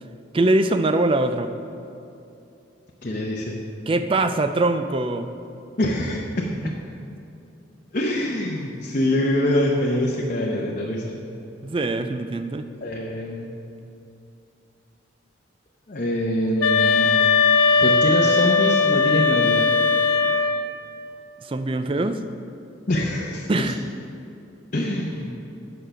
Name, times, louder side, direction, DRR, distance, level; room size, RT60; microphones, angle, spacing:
voice 1, 0.3-1.5 3.9-5.3 6.6-6.7 11.6-12.7 21.4-22.2 23.5-23.8, right 2 dB, 25° right, 9 dB, 0.4 m, -22 dB
voice 2, 3.0-3.6 5.8-6.5 7.9-11.2 12.8-13.6 15.9-17.2 17.8-19.7 22.9-23.7 24.7-25.3, left 1 dB, 45° left, -2 dB, 0.7 m, -24 dB
sound 1, 16.6-20.7, left 4 dB, 80° left, 0.5 m, -19 dB
8.9 x 6.3 x 5.6 m, 2.7 s
head